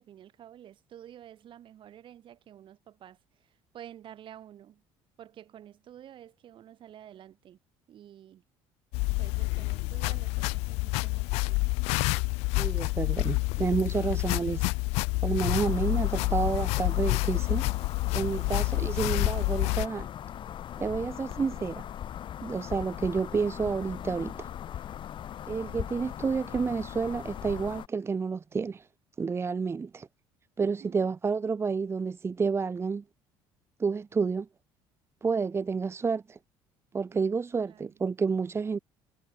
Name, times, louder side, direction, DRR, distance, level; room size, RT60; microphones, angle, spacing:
voice 1, 0.0-4.8 5.2-7.6 7.9-8.4 9.2-11.8 18.2-18.6 30.8-31.1 37.6-38.0, right 11 dB, 55° right, 4.1 m, -50 dB
sound 1, 8.9-19.9, left 27 dB, 85° left, 1.2 m, -28 dB
voice 2, 12.6-14.7 15.2-17.7 18.1-20.1 20.8-21.9 22.4-24.5 25.5-28.9 29.2-30.1 30.6-33.0 33.8-34.5 35.2-36.4 36.9-38.8, right 5 dB, 25° right, 0.8 m, -30 dB
sound 2, 15.5-27.9, left 10 dB, 50° left, 4.2 m, -39 dB
supercardioid pair, 95°, 10 cm